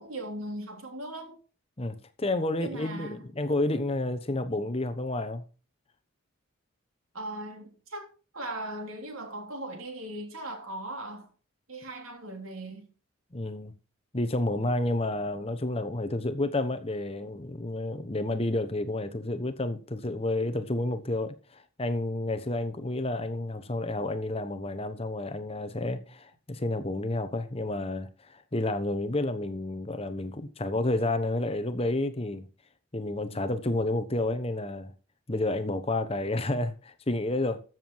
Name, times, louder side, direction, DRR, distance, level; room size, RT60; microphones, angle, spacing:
voice 1, 0.0-1.4 2.6-3.2 7.1-8.1 8.3-11.3 11.7-12.9, right 1 dB, 80° right, 3.4 m, -38 dB
voice 2, 1.8-5.4 13.3-13.7 14.1-32.5 32.9-34.9 35.3-37.6, left 2 dB, 30° left, 1.0 m, -30 dB
13.5 x 7.4 x 4.6 m
head